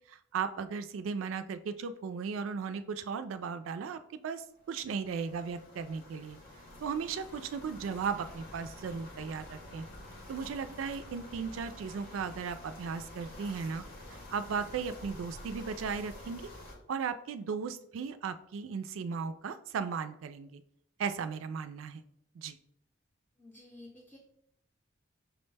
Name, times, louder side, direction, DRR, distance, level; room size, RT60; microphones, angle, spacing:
voice 1, 0.0-6.4 6.8-9.9 10.3-13.9 14.3-16.5 16.9-20.6 21.0-22.0 22.4-22.6, right 6 dB, 80° right, 11 dB, 0.3 m, -36 dB
sound 1, 4.5-16.8, left 1 dB, 50° left, 0.9 m, -49 dB
voice 2, 23.4-24.2, left 2 dB, 10° left, -3 dB, 0.6 m, -52 dB
6.0 x 2.1 x 3.3 m, 0.74 s
head